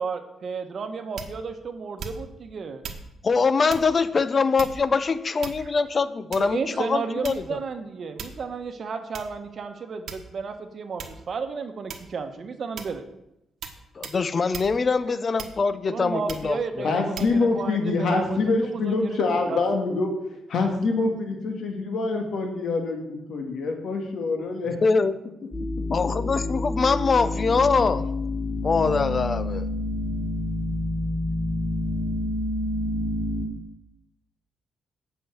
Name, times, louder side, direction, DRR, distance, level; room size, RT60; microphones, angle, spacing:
voice 1, 0.0-2.8 6.4-13.0 15.9-19.2 19.5-19.6, right 5 dB, 50° right, 7 dB, 1.1 m, -33 dB
sound 1, 1.2-1.5 2.0-2.4 2.8-3.1 3.7-3.9 4.6-5.0 5.4-5.8 6.3-6.6 7.2-7.6 8.2-8.5 9.1-9.3 10.1-10.5 11.0-11.2 11.9-12.2 12.8-13.0 13.6-13.8 14.0-14.2 14.5-14.7 15.4-15.8 16.3-16.5 17.2-17.3, right 5 dB, 70° right, 1.3 m, -38 dB
voice 2, 3.2-7.6 14.0-16.9 24.8-25.1 25.9-28.0 28.6-29.7, left 4 dB, 35° left, 14 dB, 0.6 m, -23 dB
voice 3, 16.8-20.1 20.5-24.8, left 3 dB, 70° left, 3 dB, 1.9 m, -25 dB
sound 2, 25.5-33.5, left 2 dB, 15° left, 2.3 m, -28 dB
8.1 x 5.6 x 7.9 m, 0.86 s
cardioid pair, 115°, 0 cm